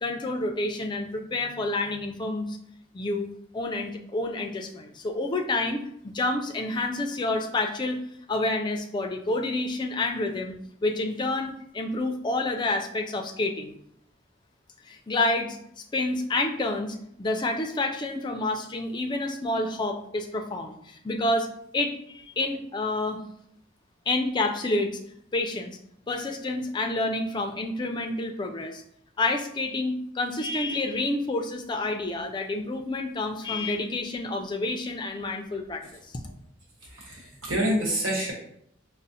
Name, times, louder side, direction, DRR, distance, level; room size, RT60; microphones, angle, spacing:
voice 1, 0.0-2.6 2.9-3.2 3.5-8.0 8.3-13.7 14.9-15.6 15.9-21.5 21.7-23.2 24.1-25.0 25.3-25.8 26.1-28.8 29.2-35.8, left 2 dB, 25° left, 3 dB, 0.4 m, -29 dB
voice 2, 36.8-38.3, equal, 85° right, -3 dB, 1.2 m, -27 dB
5.0 x 2.0 x 2.7 m, 0.70 s
head